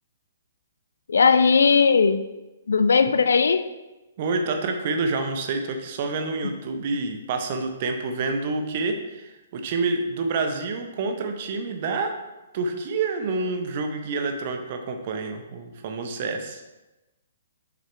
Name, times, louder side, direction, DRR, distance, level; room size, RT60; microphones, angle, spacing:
voice 1, 1.1-2.2 2.7-3.7, left 5 dB, 65° left, 11 dB, 0.4 m, -18 dB
voice 2, 4.2-12.1 12.5-16.6, right 3 dB, 40° right, 5 dB, 0.9 m, -28 dB
6.9 x 6.0 x 3.2 m, 1.0 s
figure-of-eight pair, 125°, 0 cm